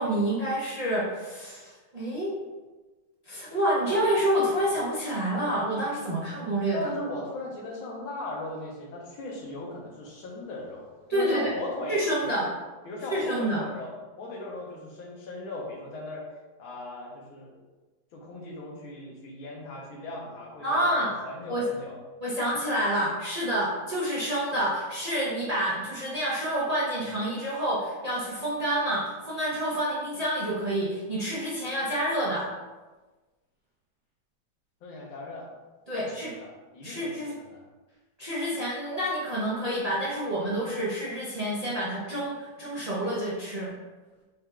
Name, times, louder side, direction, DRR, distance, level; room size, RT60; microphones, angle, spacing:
voice 1, 0.0-2.3 3.3-6.9 11.1-11.4 11.9-12.5 13.1-13.6 20.6-21.1 21.5-21.6 22.2-32.5 35.9-36.3 36.8-37.3 38.2-43.7, right 1 dB, 75° right, -8 dB, 0.3 m, -28 dB
voice 2, 6.7-12.4 12.8-16.3 16.6-17.6 18.1-22.0 34.8-35.5 35.9-37.6, left 2 dB, 85° left, -1 dB, 1.8 m, -38 dB
6.0 x 3.8 x 2.3 m, 1.2 s
omnidirectional pair, 2.2 m